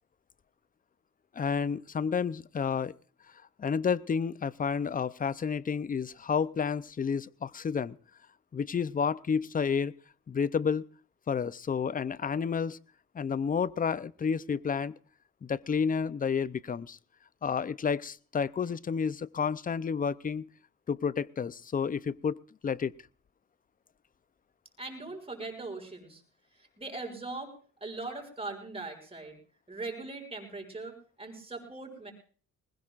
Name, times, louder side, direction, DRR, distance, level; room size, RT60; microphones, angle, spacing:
voice 1, 1.3-2.9 3.6-8.0 8.5-9.9 10.3-10.9 11.3-12.8 13.1-15.0 15.4-17.0 17.4-20.5 20.9-22.9, left 6 dB, 30° left, 0.6 m, -30 dB
voice 2, 24.8-26.2 26.6-27.5 27.8-29.3 29.7-32.1, right 3 dB, 20° right, 6.7 m, -40 dB
21.0 x 20.0 x 2.5 m
cardioid pair, 90°, 30 cm